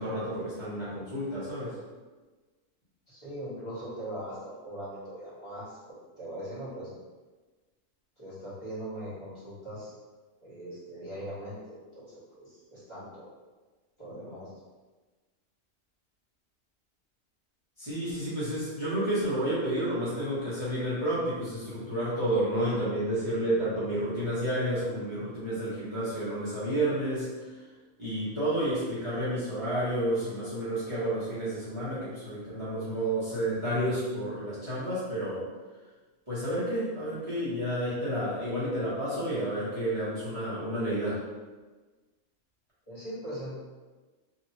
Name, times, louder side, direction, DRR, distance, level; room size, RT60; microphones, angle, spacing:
voice 1, 0.0-1.8 17.8-27.6 28.0-35.5 36.3-41.2, right 1 dB, 25° right, -12 dB, 0.9 m, -30 dB
voice 2, 3.1-5.8 6.2-6.9 8.2-9.9 10.4-13.2 14.0-14.6 42.9-43.6, right 1 dB, 25° left, -12 dB, 1.2 m, -40 dB
3.0 x 2.7 x 2.7 m, 1.3 s
omnidirectional pair, 1.4 m